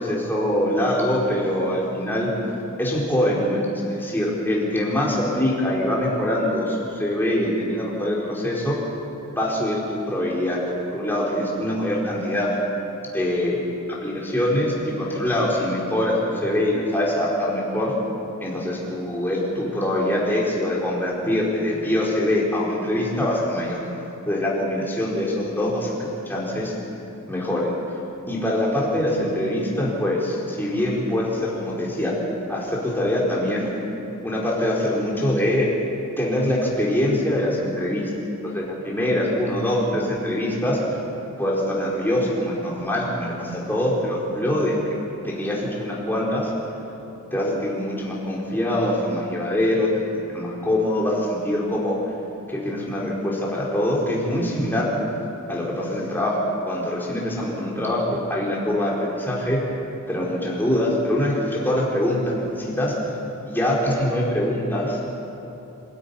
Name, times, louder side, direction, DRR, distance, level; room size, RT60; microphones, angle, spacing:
voice 1, 0.0-2.3 2.8-8.8 9.4-10.6 10.9-12.6 13.1-13.6 13.9-17.9 18.4-23.8 24.2-26.7 27.3-27.8 28.3-32.1 32.5-33.7 34.2-35.7 36.2-38.1 38.5-40.8 41.4-44.8 45.2-46.5 47.3-52.0 52.5-54.9 55.5-56.4 56.6-59.6 60.1-62.9 63.5-65.0, left 1 dB, 10° left, -5 dB, 4.5 m, -24 dB
26.5 x 13.0 x 10.0 m, 2.9 s
head